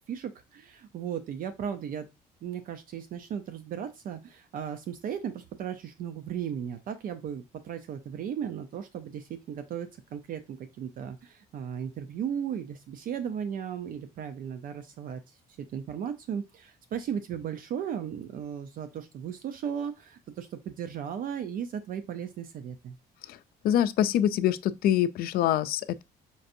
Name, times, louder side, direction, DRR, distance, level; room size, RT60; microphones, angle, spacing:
voice 1, 0.1-2.1 2.4-15.2 15.7-23.0, right 8 dB, 55° right, 0.5 m, -36 dB
voice 2, 23.6-26.0, left 11 dB, 65° left, 0.4 m, -25 dB
5.2 x 2.6 x 2.6 m
cardioid pair, 110°, 17 cm